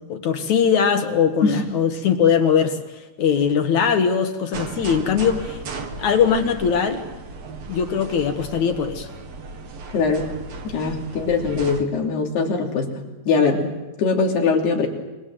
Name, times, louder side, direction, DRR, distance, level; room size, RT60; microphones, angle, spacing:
voice 1, 0.1-5.6 6.0-7.0 7.7-9.1, left 7 dB, 55° left, 7 dB, 2.6 m, -20 dB
sound 1, 4.5-11.8, right 3 dB, 45° right, 2.7 m, -36 dB
voice 2, 9.9-10.3 10.6-12.9 13.3-13.7 14.0-14.9, left 4 dB, 90° left, 1 dB, 5.2 m, -21 dB
27.5 x 23.5 x 7.9 m, 1.1 s
omnidirectional pair, 4.5 m